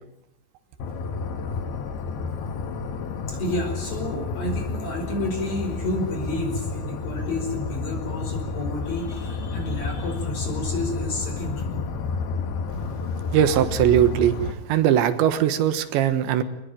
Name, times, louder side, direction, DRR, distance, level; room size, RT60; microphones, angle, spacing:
sound 1, 0.8-14.5, left 4 dB, 65° left, 3.6 m, -30 dB
voice 1, 3.3-11.8, left 1 dB, 40° left, 4 dB, 6.1 m, -30 dB
voice 2, 13.3-16.4, right 10 dB, 80° right, 11 dB, 3.6 m, -20 dB
25.5 x 20.0 x 9.1 m, 0.78 s
omnidirectional pair, 5.1 m